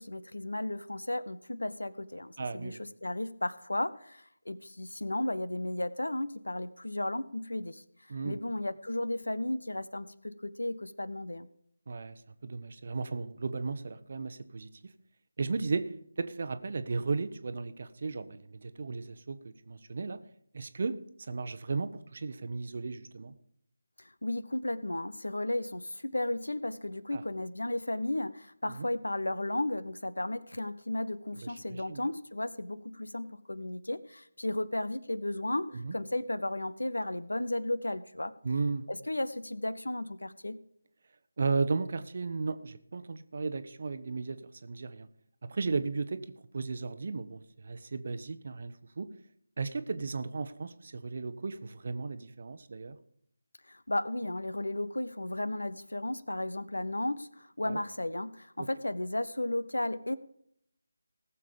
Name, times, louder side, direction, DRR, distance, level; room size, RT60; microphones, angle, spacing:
voice 1, 0.0-7.8 8.2-11.5 24.2-38.3 38.9-40.6 53.7-60.2, left 1 dB, 70° left, 17 dB, 0.8 m, -34 dB
voice 2, 2.4-2.8 8.1-8.4 11.9-14.7 15.4-15.9 16.2-20.2 20.5-23.3 27.1-27.2 28.6-28.9 31.3-32.1 35.7-36.0 38.4-38.9 41.4-45.1 45.5-46.2 46.5-49.1 49.6-53.0 57.6-57.8 58.6-58.7, right 4 dB, 40° right, 12 dB, 0.9 m, -35 dB
18.5 x 7.1 x 5.0 m, 0.71 s
figure-of-eight pair, 160°, 0 cm